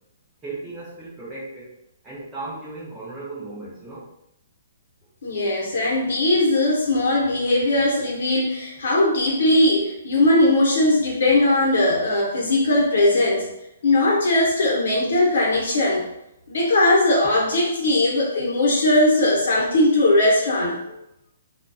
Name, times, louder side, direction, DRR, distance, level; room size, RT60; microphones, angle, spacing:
voice 1, 0.4-1.7 2.0-4.1, right 2 dB, 10° right, -9 dB, 0.5 m, -36 dB
voice 2, 5.2-13.5 13.8-16.0 16.5-20.9, left 1 dB, 60° left, -2 dB, 0.8 m, -19 dB
2.6 x 2.3 x 2.3 m, 0.82 s
hypercardioid pair, 180°, 0 cm